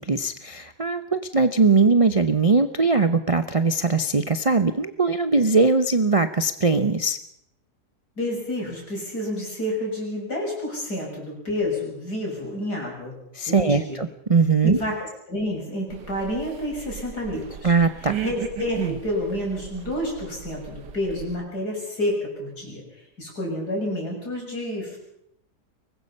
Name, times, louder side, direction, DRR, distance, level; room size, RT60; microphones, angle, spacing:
voice 1, 0.0-7.2 13.3-14.8 17.6-18.2, right 4 dB, 45° right, 10 dB, 0.4 m, -20 dB
voice 2, 8.2-13.2 13.5-14.0 14.6-15.0 15.3-17.7 18.0-22.8 23.2-25.0, left 1 dB, 65° left, -1 dB, 7.4 m, -29 dB
sound 1, 15.9-21.4, right 10 dB, 80° right, 1.8 m, -36 dB
24.0 x 20.0 x 5.5 m, 0.77 s
omnidirectional pair, 1.8 m